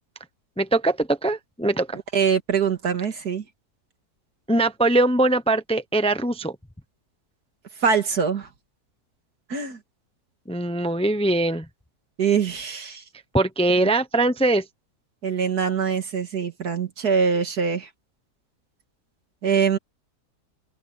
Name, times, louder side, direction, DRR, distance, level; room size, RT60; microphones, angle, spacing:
voice 1, 0.6-2.0 4.5-6.5 10.5-11.7 13.3-14.6, right 2 dB, 5° left, 0.7 m, -22 dB
voice 2, 2.1-3.4 7.8-8.5 9.5-9.8 12.2-13.0 13.8-13.9 15.2-17.9 19.4-19.8, right 6 dB, 80° right, 2.6 m, -23 dB
open air
omnidirectional pair, 1.6 m